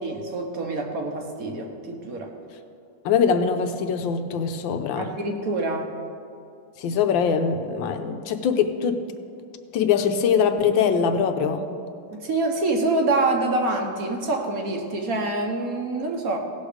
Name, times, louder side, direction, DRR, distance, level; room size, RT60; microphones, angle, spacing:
voice 1, 0.0-2.3 5.0-5.9 12.1-16.4, right 2 dB, 55° right, 3 dB, 1.2 m, -26 dB
voice 2, 3.0-5.1 6.8-9.0 9.7-11.7, left 6 dB, 80° left, 7 dB, 1.4 m, -22 dB
17.0 x 6.3 x 5.0 m, 2.5 s
omnidirectional pair, 2.1 m